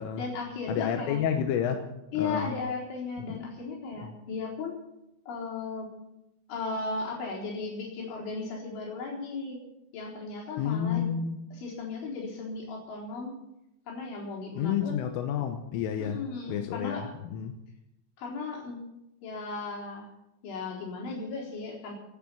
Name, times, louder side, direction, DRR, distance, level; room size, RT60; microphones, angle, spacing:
voice 1, 0.2-1.3 2.1-4.7 5.3-5.9 6.5-9.6 9.9-11.1 11.5-13.3 13.9-15.0 16.0-17.1 18.2-18.8 19.2-20.1 20.4-21.9, left 4 dB, 70° left, -2 dB, 6.4 m, -36 dB
voice 2, 0.7-1.9 2.2-2.5 3.3-3.4 4.0-4.1 10.6-11.4 14.6-16.2 16.5-17.5, left 8 dB, 90° left, 5 dB, 3.6 m, -30 dB
17.0 x 11.0 x 7.5 m, 0.89 s
omnidirectional pair, 5.7 m